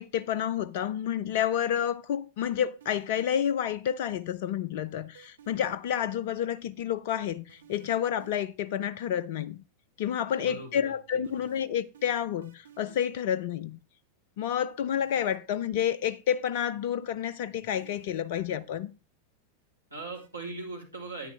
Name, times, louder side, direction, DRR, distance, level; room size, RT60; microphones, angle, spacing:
voice 1, 0.0-9.6 10.0-13.8 14.4-18.9, left 9 dB, 50° left, 0.5 m, -29 dB
sound 1, 2.8-3.3 5.1-6.0 7.5-8.7 11.2-13.2 15.0-15.5 17.8-18.3 20.1-20.3, right 9 dB, 65° right, 1.3 m, -55 dB
voice 2, 10.4-11.5 19.9-21.3, right 3 dB, 85° right, 3.4 m, -40 dB
9.8 x 9.2 x 3.3 m
figure-of-eight pair, 90°, 0 cm